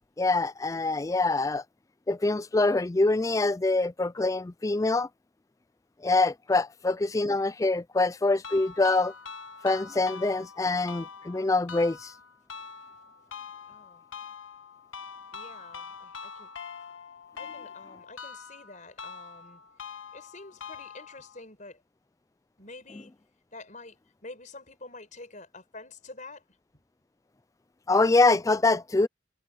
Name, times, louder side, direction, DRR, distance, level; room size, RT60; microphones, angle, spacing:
voice 1, 0.2-1.6 2.1-5.1 6.0-9.1 9.6-12.1 27.9-29.1, left 3 dB, 15° left, 0.4 m, -25 dB
sound 1, 8.4-21.4, left 6 dB, 85° left, 1.5 m, -44 dB
voice 2, 13.7-14.0 15.3-16.5 17.4-19.6 19.9-21.8 22.6-23.2 23.5-26.5 26.7-26.8, left 3 dB, 40° left, 5.7 m, -47 dB
head